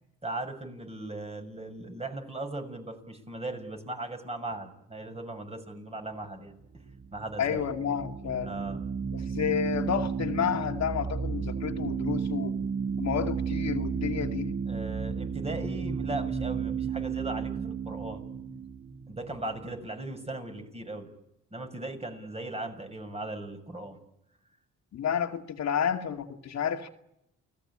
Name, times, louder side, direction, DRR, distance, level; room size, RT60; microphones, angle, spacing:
voice 1, 0.2-6.8 7.1-7.6 8.4-8.8 14.7-18.2 19.1-21.1 21.5-24.0, right 2 dB, 20° right, 6 dB, 6.7 m, -38 dB
sound 1, 6.7-20.0, right 6 dB, 50° right, 2.9 m, -33 dB
voice 2, 7.4-8.5 9.1-12.5 13.0-14.5 24.9-26.9, left 8 dB, 60° left, 4 dB, 2.4 m, -30 dB
29.5 x 19.0 x 8.8 m, 0.82 s
cardioid pair, 90°, 30 cm